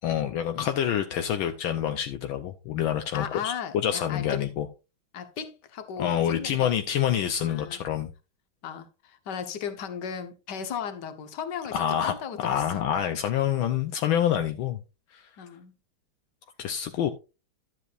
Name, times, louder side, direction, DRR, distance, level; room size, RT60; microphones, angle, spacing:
voice 1, 0.0-3.5 3.8-4.7 6.0-8.1 11.7-14.8 15.1-15.3 16.6-17.1, left 10 dB, 75° left, 1.5 m, -27 dB
voice 2, 3.1-4.4 5.1-6.7 7.4-7.8 8.6-12.8 15.4-15.7, left 7 dB, 60° left, 1.7 m, -36 dB
12.0 x 8.1 x 2.5 m
omnidirectional pair, 2.3 m